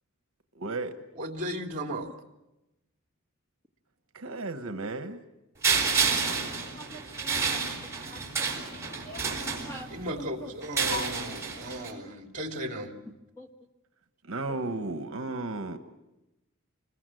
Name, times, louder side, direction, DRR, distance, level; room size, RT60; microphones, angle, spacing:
voice 1, 0.5-0.9 4.1-5.2 14.2-15.8, right 2 dB, 65° right, 8 dB, 1.2 m, -34 dB
voice 2, 1.2-2.1 9.9-12.9, equal, 35° right, 3 dB, 2.6 m, -35 dB
sound 1, 5.6-10.1 10.6-11.9, right 5 dB, 15° right, 4.4 m, -29 dB
voice 3, 6.8-7.6 8.1-8.5 9.1-9.2 9.7-9.9 10.2-10.3 10.9-11.1 13.4-13.5, left 2 dB, 10° left, 2 dB, 1.7 m, -40 dB
26.5 x 21.5 x 7.7 m, 0.98 s
head